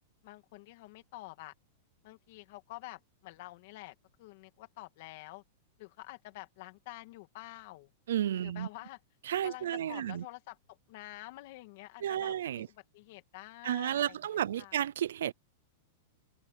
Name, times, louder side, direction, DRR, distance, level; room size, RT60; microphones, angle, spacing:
voice 1, 0.2-1.5 2.0-5.4 5.8-7.9 8.4-9.0 9.4-14.8, left 19 dB, 50° left, 2.4 m, -48 dB
voice 2, 8.1-8.7 9.3-10.2 12.0-12.7 13.6-15.3, right 11 dB, 90° right, 0.5 m, -32 dB
supercardioid pair, 165°, 0 cm